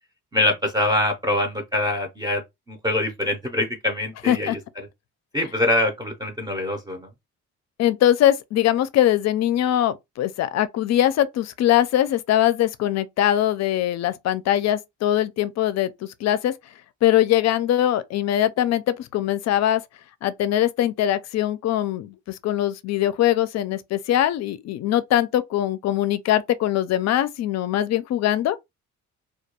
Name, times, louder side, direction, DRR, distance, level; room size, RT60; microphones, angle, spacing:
voice 1, 0.3-2.4 2.7-4.6 5.3-7.1, left 1 dB, 15° right, 0.6 m, -24 dB
voice 2, 4.3-4.6 7.8-15.9 16.2-16.5 17.0-19.8 20.2-28.6, left 12 dB, 60° left, 0.4 m, -22 dB
2.3 x 2.2 x 2.8 m
cardioid pair, 90°, 30 cm